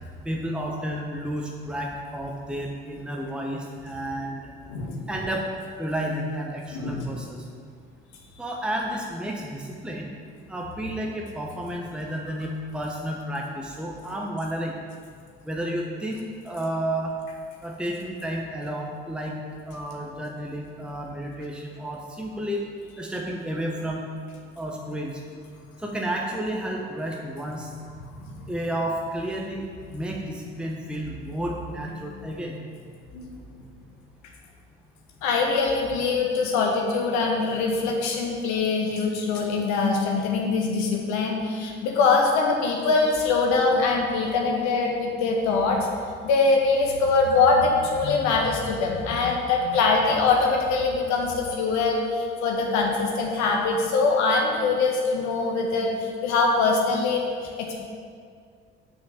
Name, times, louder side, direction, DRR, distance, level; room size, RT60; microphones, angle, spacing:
voice 1, 0.2-4.5 5.1-5.4 5.8-7.4 8.4-10.1 10.5-14.8 15.4-17.1 17.6-19.4 19.7-22.6 23.0-24.0 24.6-25.1 25.8-27.7 28.5-32.6, right 1 dB, 5° right, -1 dB, 1.0 m, -31 dB
voice 2, 6.7-7.1 28.2-28.3 30.7-30.8 31.8-31.9 33.1-33.3 35.2-45.9 46.2-57.8, left 4 dB, 65° left, 1 dB, 1.3 m, -23 dB
6.4 x 5.6 x 6.5 m, 2.1 s
figure-of-eight pair, 50°, 31 cm